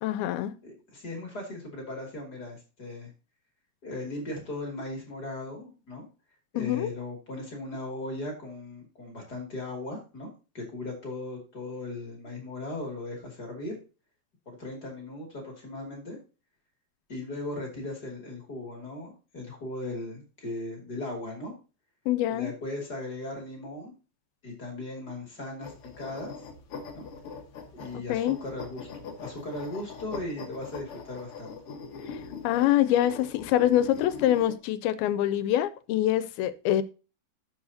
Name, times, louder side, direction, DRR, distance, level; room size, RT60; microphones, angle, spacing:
voice 1, 0.0-0.5 6.6-6.9 22.1-22.5 27.9-28.4 32.4-36.8, left 12 dB, 85° left, 2.5 m, -25 dB
voice 2, 0.6-3.1 3.8-6.1 6.5-10.3 10.5-13.8 14.5-16.2 17.1-21.5 22.3-23.9 24.4-26.3 26.9-27.0 27.7-31.6, left 2 dB, 30° left, 2.6 m, -38 dB
sound 1, 25.6-34.6, left 5 dB, 60° left, 1.5 m, -42 dB
12.0 x 7.1 x 2.8 m
omnidirectional pair, 4.3 m